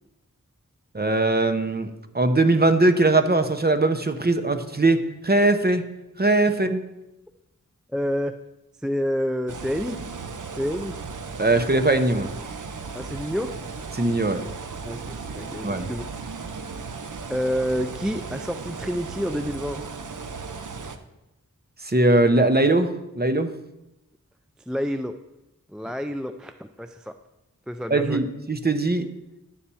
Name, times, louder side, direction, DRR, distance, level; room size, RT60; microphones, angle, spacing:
voice 1, 0.9-5.8 6.2-6.8 11.4-12.3 13.9-14.4 15.6-15.9 21.8-23.5 27.9-29.1, right 2 dB, 30° right, 7 dB, 0.8 m, -21 dB
voice 2, 7.9-8.4 8.8-10.0 10.6-11.0 12.9-13.6 14.8-16.0 17.3-19.9 24.7-25.2 25.7-27.1 27.7-28.2, equal, ahead, 8 dB, 0.4 m, -28 dB
sound 1, 9.5-21.0, right 4 dB, 65° right, 0.7 m, -36 dB
10.0 x 4.2 x 6.9 m, 0.94 s
wide cardioid pair, 60°, 33 cm